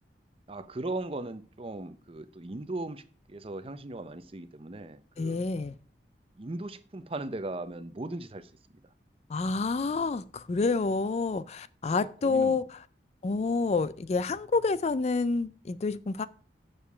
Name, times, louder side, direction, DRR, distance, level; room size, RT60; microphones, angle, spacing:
voice 1, 0.5-3.0 3.3-5.4 6.4-8.5 11.8-12.6, right 2 dB, 30° right, 0.6 m, -38 dB
voice 2, 5.2-5.8 9.3-12.6 13.2-16.2, left 4 dB, 40° left, 0.4 m, -28 dB
7.1 x 6.6 x 5.6 m
head